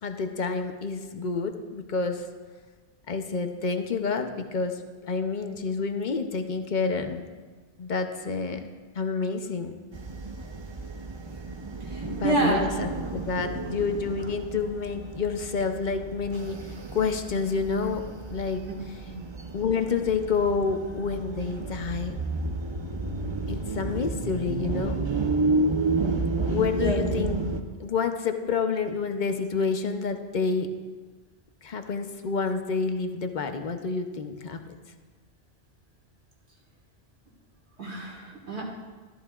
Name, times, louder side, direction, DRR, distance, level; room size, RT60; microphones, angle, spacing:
voice 1, 0.0-2.3 3.1-7.2 7.8-9.7 12.1-19.0 19.5-22.2 23.5-25.0 26.5-27.4 27.8-30.7 31.6-34.8, left 5 dB, 45° left, 6 dB, 0.8 m, -29 dB
sound 1, 9.9-27.6, right 3 dB, 30° right, 0.5 m, -31 dB
voice 2, 11.8-12.7 18.7-18.8 19.1-19.2 26.8-27.0 37.8-38.7, right 2 dB, 70° right, -1 dB, 2.2 m, -28 dB
14.0 x 13.0 x 2.4 m, 1.4 s
omnidirectional pair, 1.1 m